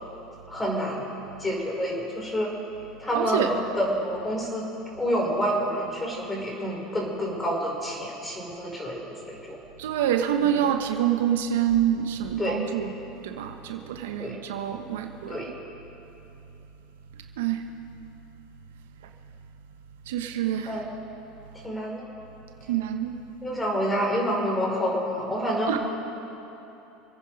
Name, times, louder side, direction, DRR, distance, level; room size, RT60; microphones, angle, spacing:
voice 1, 0.5-1.1 1.4-2.5 3.0-4.7 5.0-9.6 10.4-10.5 12.4-12.6 14.2-14.4 15.3-15.5 20.6-20.9 21.6-22.0 23.4-25.8, equal, 15° left, -1 dB, 4.9 m, -28 dB
voice 2, 3.2-3.5 9.8-12.9 13.2-15.4 17.4-17.6 20.1-20.7 22.7-23.1 25.7-25.8, right 10 dB, 80° right, 6 dB, 1.0 m, -26 dB
27.0 x 9.6 x 5.3 m, 2.9 s
hypercardioid pair, 90°, 0 cm